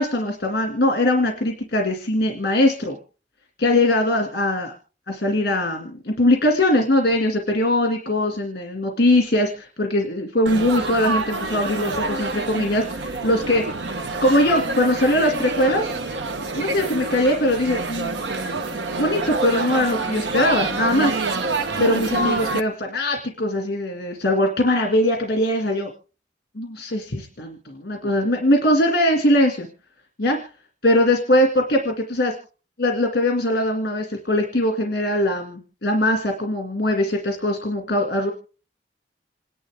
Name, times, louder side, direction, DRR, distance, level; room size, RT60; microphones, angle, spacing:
voice 1, 0.0-3.0 3.6-4.7 5.1-13.6 14.2-15.9 16.6-18.2 19.0-21.2 21.8-25.9 26.6-29.7 30.2-30.4 30.8-32.4 32.8-38.3, left 1 dB, 60° left, 2 dB, 2.2 m, -21 dB
Laughter / Chatter / Crowd, 10.5-22.6, right 3 dB, 80° right, 1.1 m, -27 dB
27.5 x 11.0 x 3.6 m, 0.37 s
head